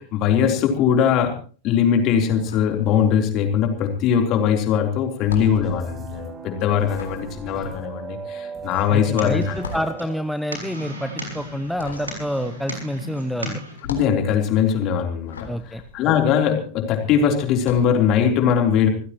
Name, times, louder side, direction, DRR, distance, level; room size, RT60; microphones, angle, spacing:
voice 1, 0.0-1.3 1.6-9.5 13.9-15.5 15.9-18.9, left 8 dB, 35° left, 4 dB, 3.7 m, -20 dB
sound 1, 2.2-3.5 3.7-16.9 17.5-18.0, left 4 dB, 70° left, 3.7 m, -40 dB
sound 2, 5.2-10.2, right 5 dB, 20° right, 2.3 m, -37 dB
sound 3, 8.7-13.7, equal, 80° right, 6.2 m, -35 dB
voice 2, 8.9-13.6 15.5-15.8, equal, ahead, 9 dB, 0.8 m, -28 dB
27.0 x 15.5 x 3.1 m, 0.39 s
figure-of-eight pair, 90°, 0 cm